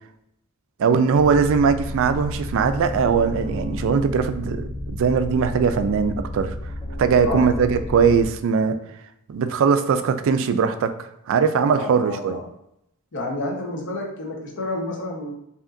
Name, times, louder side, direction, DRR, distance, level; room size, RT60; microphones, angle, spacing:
voice 1, 0.8-4.7 5.0-6.5 7.0-8.8 9.3-10.9 11.3-12.4, right 6 dB, 60° right, 10 dB, 0.3 m, -20 dB
sound 1, 1.1-8.3, left 1 dB, 5° left, 0.8 m, -31 dB
voice 2, 11.7-12.4 13.1-15.3, left 2 dB, 55° left, 0 dB, 1.0 m, -29 dB
5.0 x 2.8 x 2.6 m, 0.80 s
head